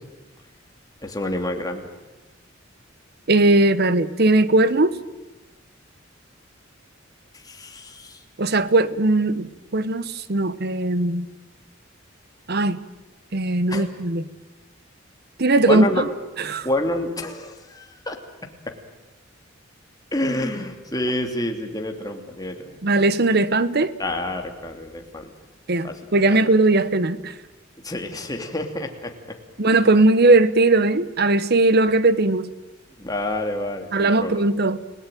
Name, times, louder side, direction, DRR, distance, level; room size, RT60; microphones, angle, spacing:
voice 1, 1.0-1.9 7.3-8.2 13.7-13.9 15.7-16.0 16.6-18.2 20.1-22.8 24.0-25.3 25.8-26.0 27.8-29.4 33.0-34.4, left 1 dB, 20° left, 3 dB, 2.8 m, -28 dB
voice 2, 3.3-5.0 8.4-11.2 12.5-12.8 13.3-14.2 15.4-16.1 16.4-16.7 22.8-23.9 25.7-27.3 29.6-32.5 33.9-34.8, right 2 dB, 55° right, 15 dB, 1.1 m, -19 dB
30.0 x 18.0 x 9.2 m, 1.1 s
head